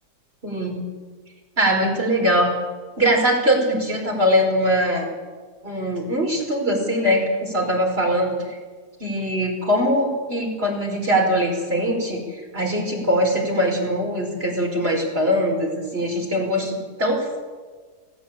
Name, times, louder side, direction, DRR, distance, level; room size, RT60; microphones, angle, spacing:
voice 1, 0.4-0.8 1.6-2.5 3.0-5.1 5.6-8.6 9.0-17.4, equal, 35° right, 1 dB, 5.1 m, -22 dB
18.5 x 17.0 x 8.8 m, 1.4 s
omnidirectional pair, 1.8 m